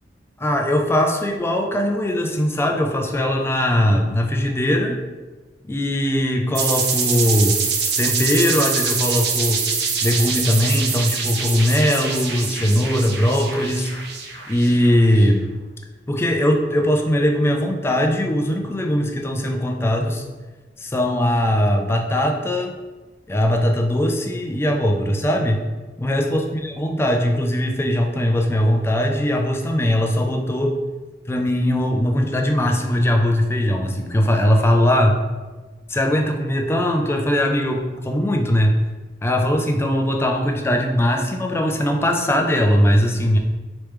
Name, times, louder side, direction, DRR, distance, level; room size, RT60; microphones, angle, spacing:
voice 1, 0.4-5.0 5.7-7.6 8.0-9.6 10.0-13.9 14.5-15.5 16.1-20.2 20.8-22.7 23.3-25.7 26.0-30.8 31.3-35.2 35.9-38.8 39.2-43.4, left 1 dB, 15° left, 2 dB, 0.3 m, -20 dB
sound 1, 6.5-15.1, right 5 dB, 65° right, 0.5 m, -24 dB
3.1 x 3.0 x 3.3 m, 1.3 s
head